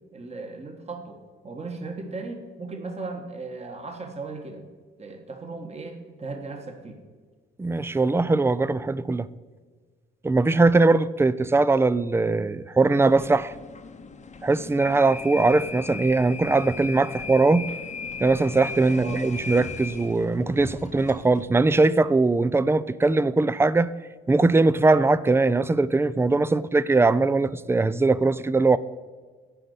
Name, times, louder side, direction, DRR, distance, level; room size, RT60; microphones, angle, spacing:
voice 1, 0.1-1.2 1.4-4.6 5.0-7.0 18.9-19.2, right 3 dB, 35° right, 1.6 m, -36 dB
voice 2, 7.6-9.3 10.2-13.5 14.4-17.7 18.2-23.9 24.3-28.8, right 3 dB, 10° right, 0.4 m, -21 dB
sound 1, 12.9-21.5, left 4 dB, 35° left, 0.9 m, -37 dB
10.0 x 5.3 x 8.0 m
cardioid pair, 90°, 20 cm